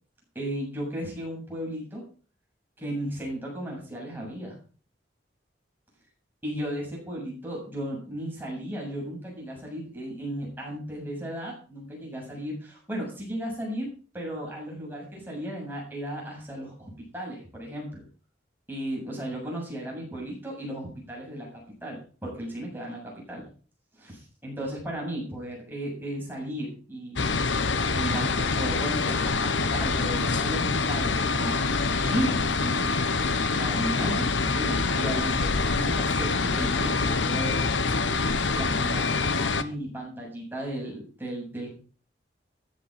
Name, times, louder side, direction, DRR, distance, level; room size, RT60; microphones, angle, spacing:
voice 1, 0.3-2.0 2.8-4.6 6.4-13.9 14.1-18.0 18.7-23.5 23.9-27.3 27.9-31.6 32.0-32.9 33.6-37.6 38.5-41.7, right 1 dB, 10° right, -3 dB, 7.6 m, -35 dB
sound 1, 27.2-39.6, left 4 dB, 90° left, 1.1 m, -25 dB
14.5 x 11.0 x 5.1 m, 0.39 s
head